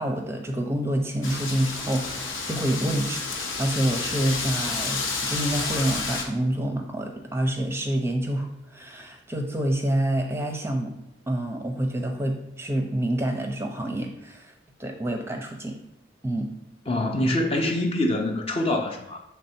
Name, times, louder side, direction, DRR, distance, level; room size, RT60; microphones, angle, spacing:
voice 1, 0.0-10.9 11.3-14.5 14.8-15.8 16.2-16.5, right 1 dB, 15° right, 3 dB, 0.6 m, -27 dB
Wind, 1.2-6.2, left 4 dB, 75° left, 0.9 m, -30 dB
voice 2, 16.9-19.2, left 1 dB, 30° left, 3 dB, 0.5 m, -25 dB
6.5 x 3.4 x 4.4 m, 0.86 s
head